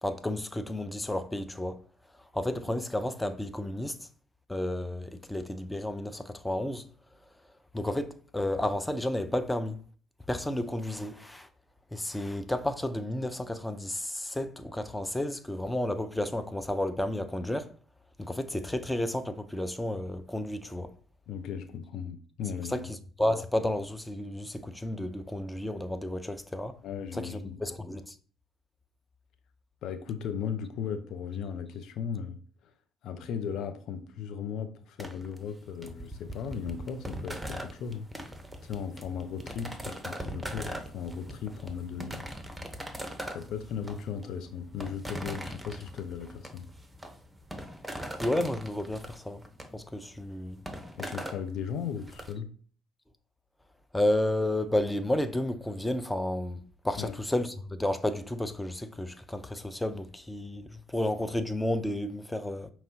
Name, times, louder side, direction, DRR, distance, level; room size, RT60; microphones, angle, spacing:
voice 1, 0.0-1.8 2.3-4.0 4.5-6.8 7.7-9.8 10.3-11.5 11.9-17.7 18.2-20.9 22.7-22.8 23.2-26.7 27.1-28.2 48.2-49.4 49.7-50.6 53.9-62.7, left 1 dB, 10° left, 0.6 m, -31 dB
voice 2, 21.3-22.9 26.8-27.6 29.8-32.4 32.6-32.7 33.0-38.1 38.6-42.2 43.3-46.7 51.0-52.5 56.9-57.1, left 7 dB, 65° left, 0.5 m, -37 dB
sound 1, 35.0-52.3, right 1 dB, 10° right, 0.9 m, -41 dB
5.3 x 3.0 x 2.8 m
hypercardioid pair, 45°, 0 cm